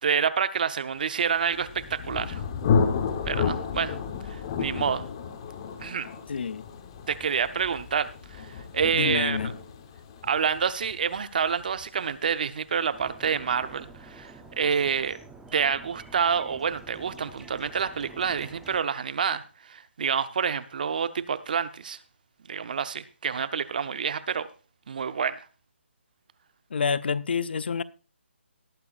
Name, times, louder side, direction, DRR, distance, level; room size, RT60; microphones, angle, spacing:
voice 1, 0.0-2.4 3.3-4.0 4.3-5.1 5.8-6.1 7.1-9.4 10.2-15.2 15.5-22.0 22.5-24.5 24.9-25.4, right 6 dB, 45° right, 0.7 m, -28 dB
Thunder, 1.3-12.9, left 6 dB, 25° left, 1.0 m, -31 dB
voice 2, 6.3-6.6 8.9-9.5 26.7-27.8, left 6 dB, 55° left, 0.5 m, -28 dB
sound 1, 12.9-18.8, right 3 dB, 5° right, 0.8 m, -48 dB
18.5 x 8.6 x 2.4 m
hypercardioid pair, 165°, 7 cm